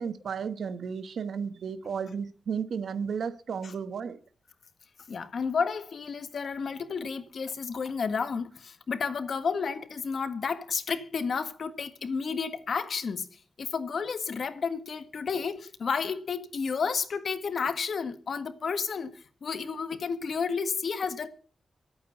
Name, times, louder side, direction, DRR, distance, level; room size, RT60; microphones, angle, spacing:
voice 1, 0.0-4.2, right 6 dB, 90° right, 1.2 m, -33 dB
voice 2, 5.1-13.3 13.6-19.1 19.4-21.3, left 5 dB, 65° left, 1.6 m, -31 dB
23.5 x 8.6 x 5.7 m
wide cardioid pair, 140°, 0 cm